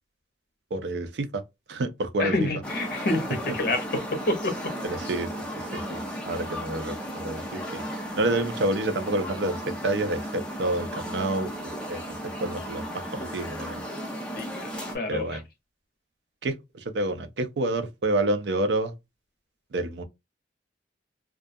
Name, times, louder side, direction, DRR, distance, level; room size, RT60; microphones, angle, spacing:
voice 1, 0.7-1.4 1.7-2.3 4.8-5.3 5.6-6.0 6.3-12.1 12.4-13.8 15.1-15.4 16.4-18.9 19.7-20.0, right 2 dB, 70° right, 0.5 m, -29 dB
voice 2, 2.2-4.6 14.3-15.4, left 2 dB, 55° left, 0.7 m, -28 dB
sound 1, 2.6-15.0, equal, 5° left, 0.5 m, -35 dB
2.3 x 2.2 x 2.5 m
head